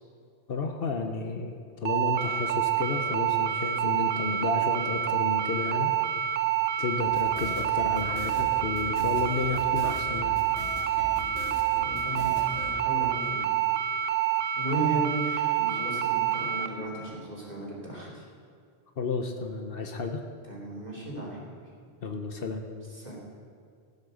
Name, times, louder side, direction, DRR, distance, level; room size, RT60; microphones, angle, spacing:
voice 1, 0.5-1.5 1.8-5.9 6.8-10.4 19.0-20.2 22.0-22.7, left 3 dB, 60° left, 5 dB, 1.1 m, -32 dB
sound 1, 1.9-16.7, right 10 dB, 65° right, 1.0 m, -27 dB
sound 2, 7.1-12.7, right 1 dB, 85° right, 2.0 m, -41 dB
voice 2, 11.8-13.5 14.6-18.2 20.5-21.5 22.9-23.2, right 2 dB, 40° right, -5 dB, 3.2 m, -35 dB
14.5 x 8.1 x 6.4 m, 2.2 s
omnidirectional pair, 1.1 m